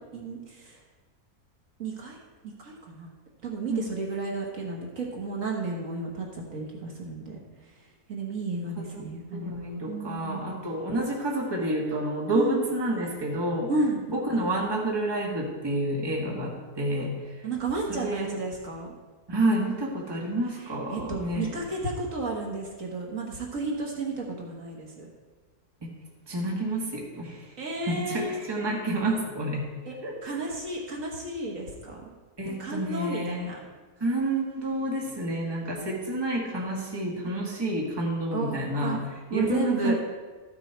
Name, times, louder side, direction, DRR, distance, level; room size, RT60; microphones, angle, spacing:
voice 1, 0.1-0.8 1.8-2.2 2.4-3.1 3.4-7.4 8.1-10.5 12.3-12.6 13.7-14.1 17.4-18.9 20.6-25.1 27.6-28.4 29.9-30.0 30.2-32.1 32.5-33.6 38.3-39.0 39.3-39.9, right 3 dB, 60° right, -1 dB, 1.8 m, -32 dB
voice 2, 9.3-13.7 14.1-17.5 17.9-18.4 19.3-21.5 26.3-27.4 27.8-29.6 30.0-30.5 32.4-33.5 34.0-39.0 39.3-39.9, right 1 dB, 15° right, -2 dB, 1.5 m, -29 dB
13.5 x 6.2 x 4.5 m, 1.3 s
omnidirectional pair, 1.6 m